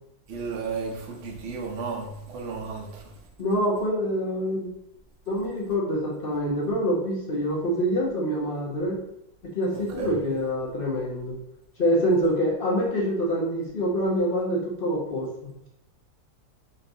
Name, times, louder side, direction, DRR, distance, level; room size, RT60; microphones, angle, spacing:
voice 1, 0.3-2.9 10.0-10.2, right 5 dB, 50° right, 0 dB, 0.9 m, -33 dB
voice 2, 3.4-4.8 5.3-9.0 9.5-11.4 11.8-15.7, equal, 45° left, -3 dB, 0.8 m, -26 dB
4.4 x 3.0 x 3.9 m, 0.81 s
omnidirectional pair, 2.0 m